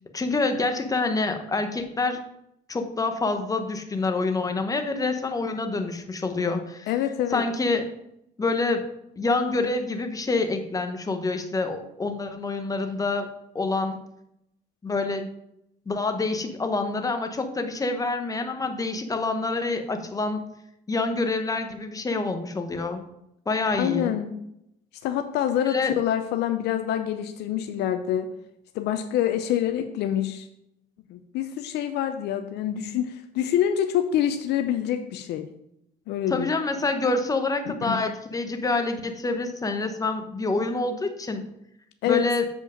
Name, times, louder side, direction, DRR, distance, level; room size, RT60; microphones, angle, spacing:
voice 1, 0.1-2.2 2.7-6.9 7.3-7.8 8.4-8.8 9.2-13.3 13.5-14.0 14.8-15.3 15.9-20.4 20.9-23.0 23.5-24.1 25.7-26.0 36.3-41.4 42.1-42.4, left 3 dB, 20° left, 6 dB, 1.0 m, -27 dB
voice 2, 6.9-7.5 23.8-24.3 25.0-28.3 28.7-30.5 31.1-35.5 36.1-36.5 37.7-38.0 42.0-42.2, left 10 dB, 80° left, 7 dB, 0.6 m, -26 dB
7.5 x 5.1 x 5.1 m, 0.80 s
cardioid pair, 110°, 17 cm